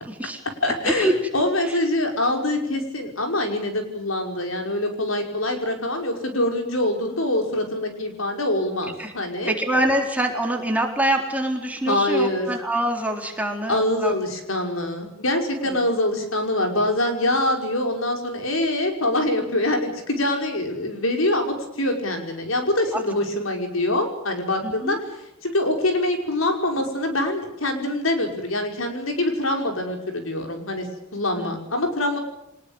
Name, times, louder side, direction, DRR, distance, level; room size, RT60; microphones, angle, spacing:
voice 1, 0.1-1.1 1.7-1.8 9.0-9.1 9.5-14.1 15.7-15.8 24.6-25.0 31.4-31.6, right 1 dB, 5° right, 2 dB, 3.9 m, -25 dB
voice 2, 0.6-9.5 11.9-12.5 13.7-25.0 25.4-32.2, left 1 dB, 85° left, 4 dB, 5.5 m, -24 dB
24.5 x 20.0 x 9.0 m, 0.85 s
head